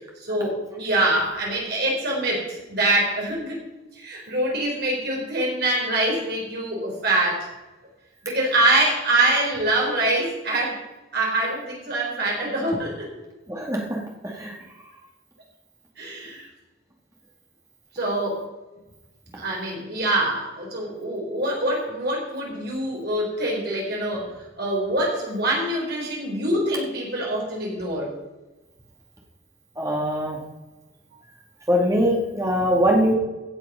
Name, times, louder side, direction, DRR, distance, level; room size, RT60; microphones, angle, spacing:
voice 1, 0.2-3.6 3.9-7.5 8.2-10.8 11.1-13.1 16.0-16.5 17.9-18.5 19.3-28.1, right 1 dB, 50° right, -2 dB, 4.2 m, -24 dB
voice 2, 13.5-14.6 29.8-30.4 31.7-33.1, equal, 15° right, -1 dB, 2.2 m, -22 dB
16.0 x 6.6 x 5.6 m, 1.1 s
head